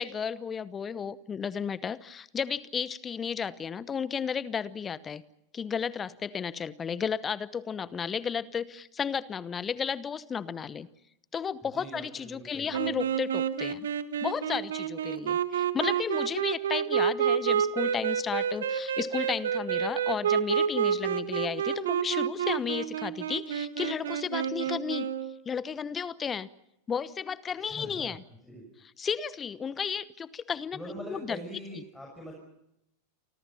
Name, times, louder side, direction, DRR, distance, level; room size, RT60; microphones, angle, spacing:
voice 1, 0.0-5.2 5.5-10.9 11.3-13.9 14.2-25.1 25.5-26.5 26.9-28.2 29.0-30.8 31.1-31.4, left 7 dB, 20° left, 19 dB, 1.0 m, -33 dB
voice 2, 11.6-13.0 27.6-28.2 28.4-28.7 30.7-32.3, equal, 5° left, 0 dB, 6.5 m, -43 dB
sound 1, 12.7-25.3, right 8 dB, 65° right, 1.6 m, -29 dB
29.5 x 25.0 x 5.7 m, 0.83 s
figure-of-eight pair, 90°, 0 cm